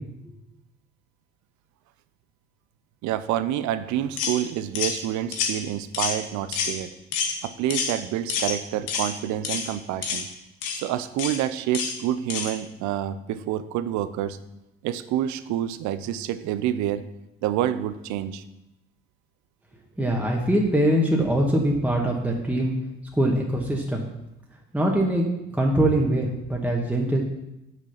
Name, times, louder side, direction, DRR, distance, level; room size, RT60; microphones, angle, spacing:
voice 1, 3.0-6.9 7.4-10.3 10.7-14.4 14.8-17.0 17.4-18.4, right 11 dB, 70° right, 14 dB, 0.7 m, -28 dB
sound 1, 4.2-4.4 4.8-5.0 5.3-5.5 5.9-6.2 6.5-6.7 7.1-7.3 7.7-7.9 8.3-8.6 8.9-9.1 9.4-9.7 10.0-10.2 10.6-10.8 11.2-11.4 11.7-11.9 12.3-12.5, left 6 dB, 75° left, 1.5 m, -27 dB
voice 2, 20.0-22.7 23.2-24.0 24.7-25.2 25.5-27.2, right 1 dB, 5° right, -1 dB, 1.6 m, -22 dB
6.7 x 6.3 x 5.8 m, 0.92 s
hypercardioid pair, 55°, 30 cm